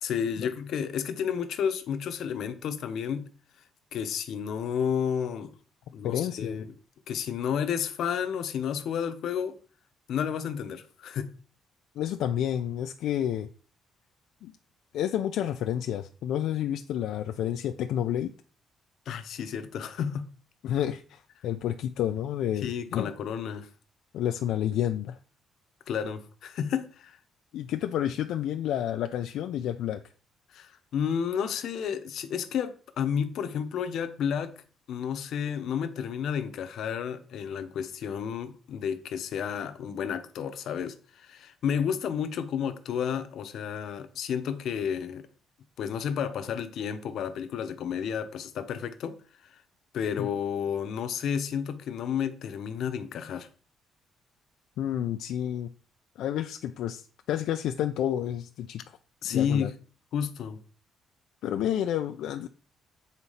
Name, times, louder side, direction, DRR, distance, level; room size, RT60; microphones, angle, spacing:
voice 1, 0.0-3.3 3.9-5.5 5.9-6.7 7.1-9.6 10.1-11.3 19.1-20.3 22.6-23.7 25.9-27.2 30.5-34.6 34.9-45.3 45.8-49.2 49.4-49.5 49.9-53.5 59.2-59.8 60.1-60.6, left 8 dB, 60° left, 0.9 m, -31 dB
voice 2, 6.0-6.7 12.0-13.5 14.4-14.5 14.9-18.3 20.6-23.1 24.1-25.2 27.5-30.0 50.2-50.3 54.8-55.7 56.2-58.8 59.3-59.7 61.4-62.5, left 10 dB, 75° left, 0.5 m, -30 dB
8.2 x 4.1 x 5.6 m
cardioid pair, 170°, 0 cm